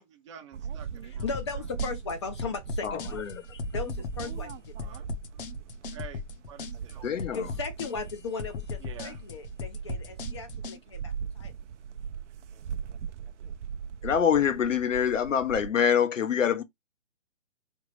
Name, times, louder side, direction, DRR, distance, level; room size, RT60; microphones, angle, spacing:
voice 1, 0.0-1.3 4.8-7.4 8.8-9.2, right 9 dB, 25° right, 0.6 m, -49 dB
sound 1, 0.5-15.7, right 7 dB, 65° right, 0.6 m, -39 dB
voice 2, 1.0-3.2 3.7-5.1 7.3-11.5, left 4 dB, 25° left, 0.4 m, -37 dB
sound 2, 1.2-10.8, left 6 dB, 45° left, 0.9 m, -38 dB
voice 3, 2.8-3.6 7.0-7.5 14.0-16.6, left 8 dB, 80° left, 1.0 m, -25 dB
3.8 x 3.4 x 3.2 m
hypercardioid pair, 140°, 38 cm